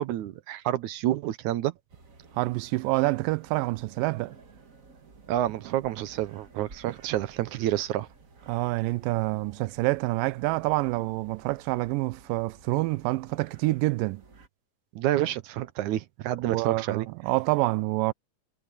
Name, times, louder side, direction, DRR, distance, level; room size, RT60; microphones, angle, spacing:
voice 1, 0.0-1.7 5.3-8.1 14.9-17.1, right 13 dB, 70° right, 2.0 m, -29 dB
sound 1, 1.9-14.5, right 4 dB, 35° right, 1.3 m, -53 dB
voice 2, 2.4-4.4 6.9-7.0 8.5-14.2 16.5-18.1, right 21 dB, 90° right, 2.3 m, -27 dB
omnidirectional pair, 3.9 m